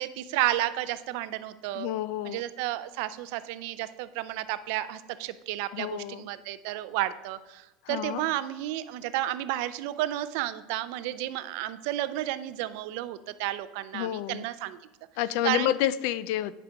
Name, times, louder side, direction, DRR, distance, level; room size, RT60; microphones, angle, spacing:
voice 1, 0.0-1.9 2.2-14.8 15.4-15.7, right 14 dB, 60° right, 14 dB, 0.4 m, -32 dB
voice 2, 1.7-2.4 5.7-6.3 7.8-8.2 13.9-14.4 15.2-16.5, left 13 dB, 60° left, 17 dB, 0.3 m, -29 dB
10.5 x 5.1 x 3.4 m, 1.1 s
cardioid pair, 170°, 0 cm